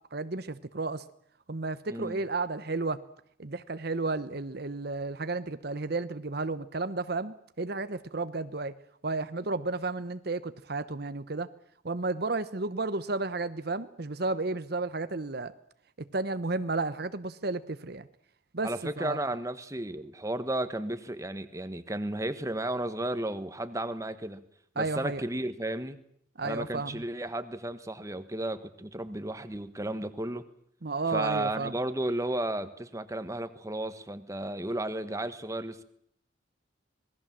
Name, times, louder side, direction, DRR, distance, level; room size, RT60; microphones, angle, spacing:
voice 1, 0.1-1.0 1.5-3.0 3.4-8.7 9.0-11.5 11.8-15.5 16.1-18.1 18.5-18.7 19.0-19.3 24.8-25.2 26.4-27.0 30.8-31.7, right 3 dB, 55° right, 12 dB, 0.9 m, -32 dB
voice 2, 1.9-2.2 18.6-24.4 24.7-26.0 26.4-30.4 31.1-35.8, right 1 dB, 15° right, 11 dB, 1.3 m, -33 dB
26.5 x 20.0 x 7.5 m, 0.67 s
head